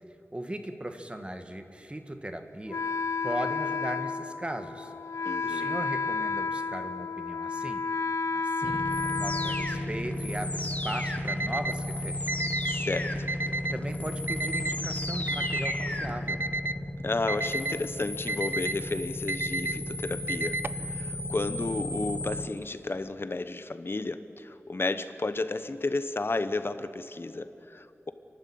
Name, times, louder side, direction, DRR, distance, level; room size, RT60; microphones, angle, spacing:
voice 1, 0.3-2.8 3.2-4.9 5.4-7.9 8.3-8.8 9.2-12.6 13.5-16.5, right 1 dB, 20° right, 7 dB, 1.7 m, -38 dB
Wind instrument woodwind instrument, 2.7-10.4, left 4 dB, 85° left, 0.5 m, -32 dB
voice 2, 5.2-5.8 12.7-13.3 17.0-28.1, left 2 dB, 50° left, 11 dB, 1.1 m, -32 dB
sound 1, 8.6-22.5, left 1 dB, 30° left, 1.8 m, -33 dB
Alarm, 11.3-11.7 12.3-12.7 13.3-13.7 14.3-14.7 15.3-15.7 16.3-16.7 17.3-17.7 18.3-18.7 19.3-19.7 20.3-20.8, right 2 dB, 45° right, 0.5 m, -31 dB
29.5 x 11.5 x 8.7 m, 2.7 s
wide cardioid pair, 65°, 5 cm